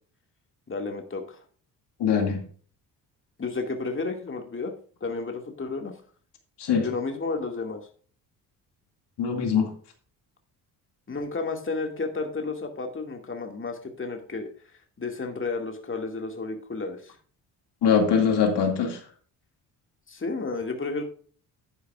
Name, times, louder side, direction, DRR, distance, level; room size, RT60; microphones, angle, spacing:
voice 1, 0.7-1.4 3.4-4.7 5.0-5.9 6.8-7.8 11.1-14.5 15.0-17.2 20.1-21.0, left 3 dB, 25° left, 4 dB, 2.1 m, -32 dB
voice 2, 2.0-2.4 6.6-6.9 9.2-9.7 17.8-19.0, left 6 dB, 60° left, 3 dB, 2.3 m, -22 dB
11.0 x 9.4 x 2.4 m, 0.43 s
hypercardioid pair, 50°, 46 cm